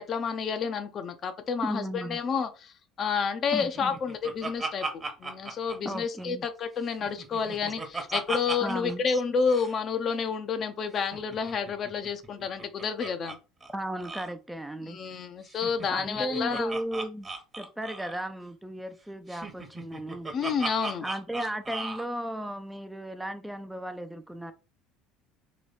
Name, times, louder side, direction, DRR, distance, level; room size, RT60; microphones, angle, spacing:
voice 1, 0.0-2.7 3.0-13.4 14.8-16.7 20.3-21.1, left 6 dB, 45° left, 0.7 m, -30 dB
voice 2, 1.6-2.2 3.5-4.0 5.8-6.4 8.6-9.2 13.7-15.0 15.9-17.3 17.6-20.3 21.0-24.5, right 1 dB, 5° right, 0.5 m, -35 dB
Laughter, 3.6-6.5 6.8-8.9 9.2-9.3 9.5-9.7 11.0-13.4 13.6-13.7 14.0-14.3 15.5-18.3 19.3-22.1, right 3 dB, 25° right, 1.1 m, -37 dB
3.1 x 3.1 x 4.1 m
hypercardioid pair, 70°, 0 cm